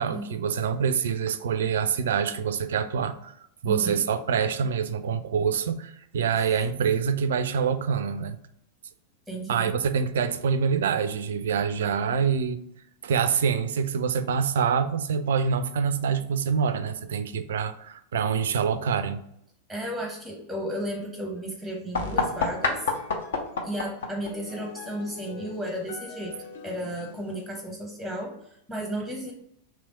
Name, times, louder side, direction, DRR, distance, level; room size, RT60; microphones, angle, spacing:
voice 1, 0.0-3.3 3.6-8.4 9.5-12.6 13.0-19.2, right 6 dB, 60° right, 0.3 m, -26 dB
voice 2, 3.6-4.0 9.3-9.7 19.7-22.9 23.6-26.3 26.6-29.3, right 1 dB, 5° left, 0.8 m, -34 dB
sound 1, 21.9-27.5, left 4 dB, 60° left, 0.7 m, -32 dB
3.3 x 2.9 x 4.0 m
figure-of-eight pair, 90°, 0 cm